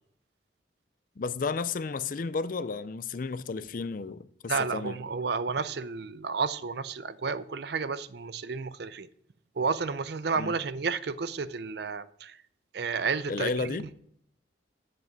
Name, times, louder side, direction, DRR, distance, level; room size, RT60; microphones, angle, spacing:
voice 1, 1.2-5.0 10.4-10.5 13.3-13.9, left 4 dB, 45° left, 0.4 m, -32 dB
voice 2, 4.5-9.1 9.6-12.4 12.7-13.9, right 5 dB, 55° right, 0.5 m, -31 dB
8.0 x 7.6 x 4.7 m
head